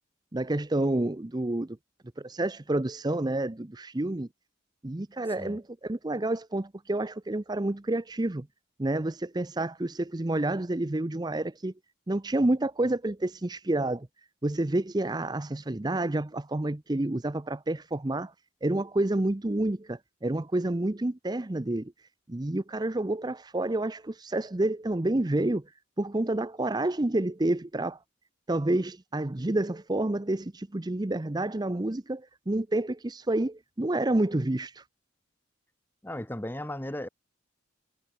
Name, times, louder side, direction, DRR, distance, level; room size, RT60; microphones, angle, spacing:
voice 1, 0.3-1.8 2.2-4.3 4.8-8.5 8.8-11.7 12.1-14.1 14.4-18.3 18.6-21.9 22.3-25.6 26.0-28.0 28.5-34.8, right 1 dB, 20° right, 0.6 m, -29 dB
voice 2, 36.0-37.1, left 1 dB, 10° left, 1.1 m, -36 dB
head